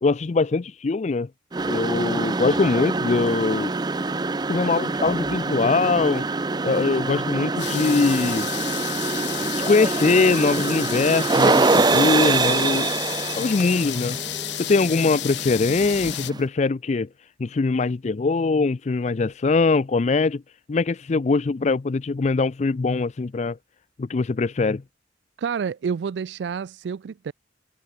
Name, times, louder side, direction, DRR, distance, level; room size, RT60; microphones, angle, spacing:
voice 1, 0.0-1.3 1.7-3.7 4.5-6.2 6.6-8.5 9.7-12.9 13.4-14.2 14.6-17.1 17.4-20.4 20.7-23.6 24.0-24.8, left 4 dB, 40° left, 0.4 m, -22 dB
sound 1, 1.5-16.4, right 3 dB, 25° right, 0.6 m, -25 dB
sound 2, 7.6-16.3, left 14 dB, 80° left, 0.9 m, -32 dB
voice 2, 25.4-27.3, right 6 dB, 75° right, 0.3 m, -29 dB
head